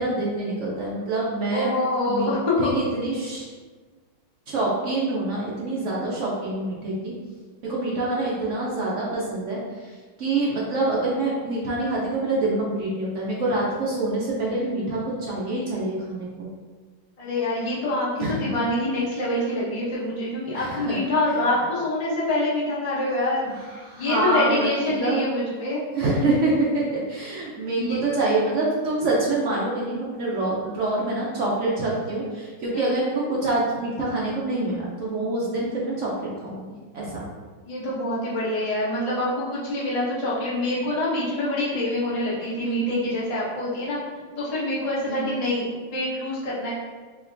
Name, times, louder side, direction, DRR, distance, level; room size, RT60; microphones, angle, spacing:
voice 1, 0.0-1.7 2.1-2.3 2.6-3.4 4.5-7.1 7.6-9.9 10.2-16.5 18.2-18.5 20.5-21.0 23.5-23.6 23.8-25.2 25.9-36.1 36.4-36.6 36.9-37.3 42.6-42.9 45.1-45.4, right 2 dB, 70° right, -5 dB, 0.7 m, -26 dB
voice 2, 1.5-2.6 17.2-25.8 27.8-28.0 32.7-33.0 37.6-44.0 44.4-46.7, left 1 dB, 60° left, -8 dB, 0.4 m, -26 dB
4.3 x 2.9 x 2.6 m, 1.4 s
omnidirectional pair, 2.0 m